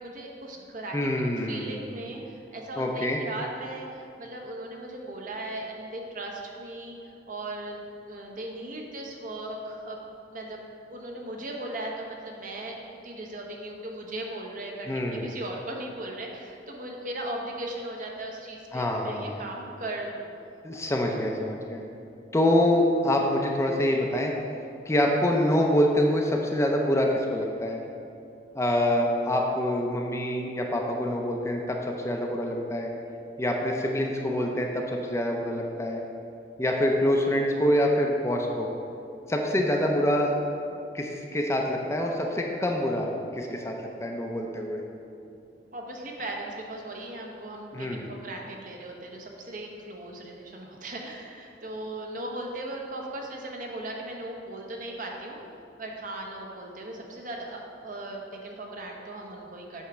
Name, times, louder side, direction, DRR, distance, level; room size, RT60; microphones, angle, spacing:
voice 1, 0.0-7.8 8.1-10.0 10.3-10.6 10.9-12.8 13.0-20.3 45.7-55.4 55.8-59.9, right 1 dB, 50° right, 0 dB, 0.9 m, -38 dB
voice 2, 0.9-1.8 2.8-3.2 14.9-15.3 18.7-19.5 20.6-21.8 22.3-24.3 24.9-27.8 28.5-32.9 33.4-36.0 36.6-38.7 39.3-40.4 40.9-43.7 44.0-44.8 47.7-48.1, left 1 dB, 15° left, 1 dB, 0.6 m, -26 dB
8.4 x 3.5 x 6.1 m, 2.6 s
head